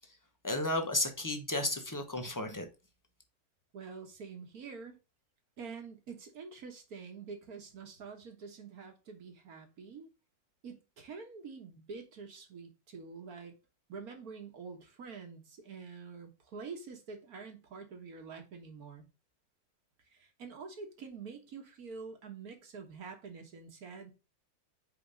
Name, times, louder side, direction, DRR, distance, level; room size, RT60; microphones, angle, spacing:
voice 1, 0.4-2.7, left 1 dB, 20° left, 0.5 m, -33 dB
voice 2, 3.7-5.0 5.6-10.1 10.6-13.5 13.9-19.1 20.1-24.1, right 5 dB, 55° right, 1.6 m, -47 dB
5.0 x 4.8 x 5.1 m
omnidirectional pair, 2.0 m